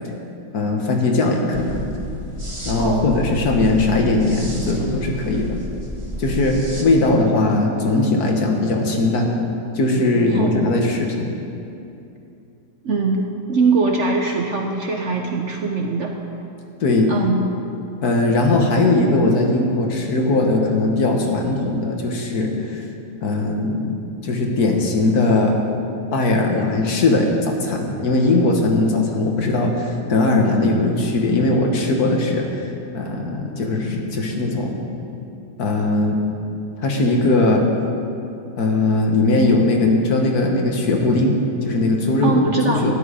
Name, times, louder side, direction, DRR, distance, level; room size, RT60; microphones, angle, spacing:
voice 1, 0.5-1.9 2.7-5.6 6.2-9.3 9.7-11.3 16.8-17.1 18.0-22.9 23.2-24.0 24.2-25.6 26.1-32.7 32.9-34.8 35.6-36.2 36.8-37.6 38.6-42.9, left 2 dB, 65° left, 1 dB, 1.7 m, -19 dB
sound 1, 1.5-6.8, equal, 20° right, 1.2 m, -31 dB
voice 2, 2.8-3.2 10.3-10.7 12.8-16.1 17.1-17.5 42.2-42.9, right 3 dB, 55° right, 2 dB, 0.9 m, -22 dB
12.5 x 10.5 x 5.0 m, 2.7 s
omnidirectional pair, 1.8 m